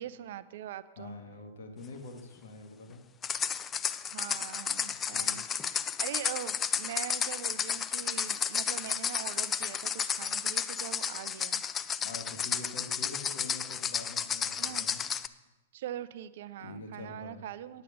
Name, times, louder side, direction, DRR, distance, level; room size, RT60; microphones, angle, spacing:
voice 1, 0.0-1.1 4.1-11.6 14.6-14.9 15.7-17.8, right 11 dB, 60° right, 15 dB, 0.5 m, -42 dB
voice 2, 1.0-3.0 4.9-5.4 12.0-15.0 16.6-17.4, left 3 dB, 65° left, 4 dB, 1.8 m, -45 dB
sound 1, 3.2-15.3, left 7 dB, 20° left, 0.4 m, -32 dB
Bell, 8.0-11.6, left 1 dB, 85° left, 2.4 m, -60 dB
9.7 x 8.5 x 5.1 m, 1.1 s
hypercardioid pair, 110°, 0 cm